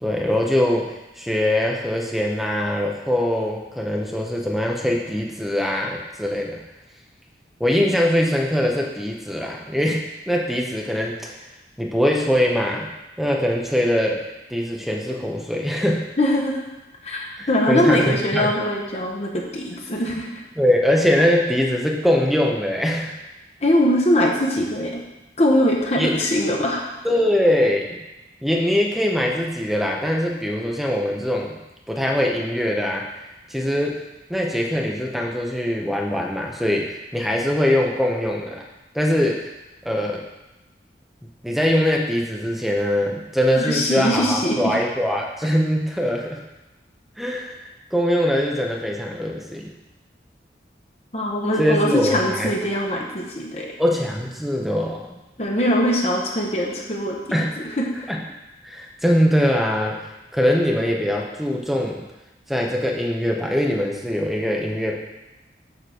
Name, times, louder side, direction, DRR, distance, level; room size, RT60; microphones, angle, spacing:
voice 1, 0.0-6.6 7.6-11.4 11.8-12.9 13.2-14.2 14.5-16.0 17.3-18.5 20.6-23.2 26.0-26.2 27.0-28.0 28.4-31.5 31.9-33.1 33.5-34.0 34.3-38.6 38.9-39.5 39.8-40.2 41.4-46.4 47.2-49.7 51.6-52.5 53.8-55.2 57.3-57.5 58.1-58.2 58.6-62.0 62.5-65.0, left 1 dB, ahead, -1 dB, 0.8 m, -22 dB
voice 2, 16.2-16.6 17.0-20.4 23.6-25.0 25.4-26.9 43.6-44.7 51.1-53.7 55.4-57.8, equal, 35° left, -1 dB, 1.0 m, -22 dB
6.7 x 3.9 x 6.3 m, 1.0 s
head